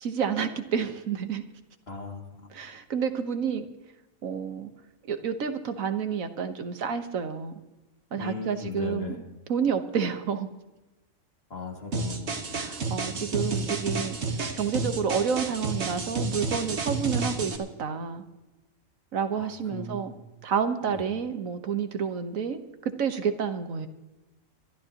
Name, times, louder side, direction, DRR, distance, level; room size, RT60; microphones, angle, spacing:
voice 1, 0.0-1.4 2.5-3.7 4.2-4.7 5.1-7.5 8.1-9.1 9.5-10.5 12.5-14.2 14.5-18.2 19.1-20.1 20.4-22.6 23.0-23.9, right 7 dB, 85° right, 8 dB, 1.6 m, -29 dB
voice 2, 1.9-2.5 8.1-9.2 11.5-12.4 19.3-20.2 20.9-21.1, left 3 dB, 50° left, 1 dB, 2.6 m, -37 dB
sound 1, 11.9-17.6, right 3 dB, 55° right, 1.7 m, -30 dB
24.5 x 13.0 x 2.9 m, 1.0 s
omnidirectional pair, 1.4 m